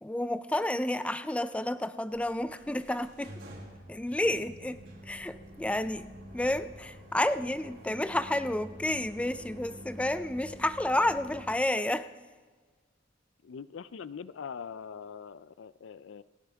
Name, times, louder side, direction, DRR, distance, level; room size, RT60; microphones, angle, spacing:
voice 1, 0.0-3.3 3.9-6.1 6.3-12.1, left 1 dB, 5° left, 12 dB, 0.4 m, -30 dB
sound 1, 2.1-11.5, equal, 70° right, 5.0 m, -48 dB
voice 2, 13.4-16.2, left 6 dB, 75° left, 16 dB, 0.4 m, -42 dB
28.5 x 9.6 x 3.5 m, 1.4 s
head